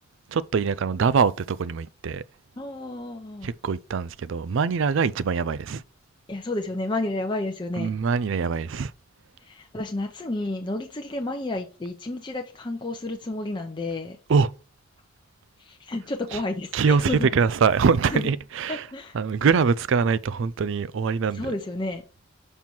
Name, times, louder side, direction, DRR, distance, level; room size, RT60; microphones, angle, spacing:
voice 1, 0.3-2.2 3.4-5.8 7.8-8.9 14.3-14.5 16.7-18.8 19.1-21.5, right 5 dB, 65° right, 0.4 m, -23 dB
voice 2, 2.6-3.5 6.3-7.9 9.5-14.2 15.6-17.4 18.1-18.3 18.7-19.2 21.3-22.0, left 2 dB, 25° left, 0.7 m, -31 dB
6.0 x 5.5 x 4.4 m
head